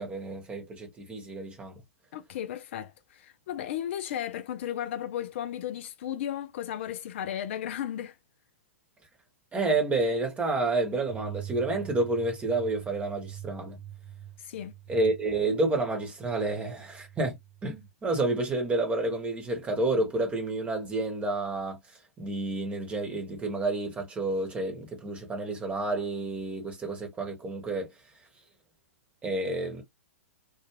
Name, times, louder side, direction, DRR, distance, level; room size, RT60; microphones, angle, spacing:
voice 1, 0.0-1.8 9.5-13.8 14.9-17.4 17.6-21.8 22.2-27.9 29.2-29.8, right 2 dB, 15° right, 1.0 m, -29 dB
voice 2, 2.1-8.2 14.4-14.7, left 10 dB, 55° left, 0.4 m, -35 dB
sound 1, 11.1-17.9, right 11 dB, 80° right, 1.0 m, -45 dB
2.4 x 2.3 x 2.9 m
hypercardioid pair, 115°, 8 cm